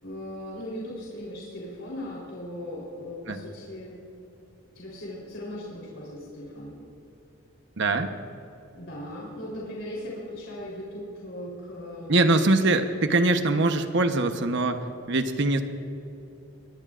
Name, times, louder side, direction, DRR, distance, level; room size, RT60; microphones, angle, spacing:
voice 1, 0.0-4.0 4.8-6.8 8.7-12.1, left 1 dB, 70° left, -5 dB, 3.7 m, -38 dB
voice 2, 7.8-8.1 12.1-15.6, right 2 dB, 60° right, 7 dB, 1.0 m, -23 dB
23.0 x 21.5 x 2.5 m, 2.9 s
head